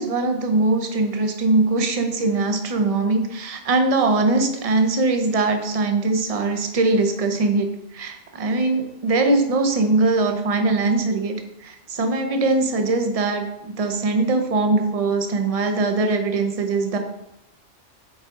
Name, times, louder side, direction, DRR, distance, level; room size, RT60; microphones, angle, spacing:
voice 1, 0.0-11.4 11.6-17.0, right 3 dB, 35° right, 5 dB, 0.7 m, -21 dB
9.0 x 3.9 x 3.7 m, 0.86 s
omnidirectional pair, 1.2 m